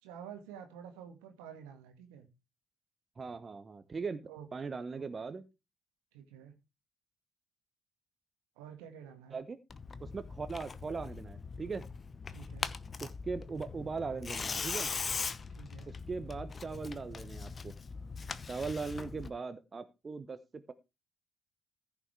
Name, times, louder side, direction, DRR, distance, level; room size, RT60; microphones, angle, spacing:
voice 1, 0.0-2.3 4.3-5.0 6.1-6.5 8.6-9.4 12.3-12.7 15.5-15.9, right 8 dB, 75° right, 7 dB, 1.7 m, -50 dB
voice 2, 3.2-5.4 9.3-9.6 10.0-11.8 13.0-14.9 15.9-17.8 18.5-20.7, right 4 dB, 35° right, 11 dB, 1.0 m, -39 dB
Tearing, 9.7-19.3, left 4 dB, 40° left, 0.9 m, -41 dB
14.5 x 5.8 x 4.7 m, 0.26 s
figure-of-eight pair, 45°, 0 cm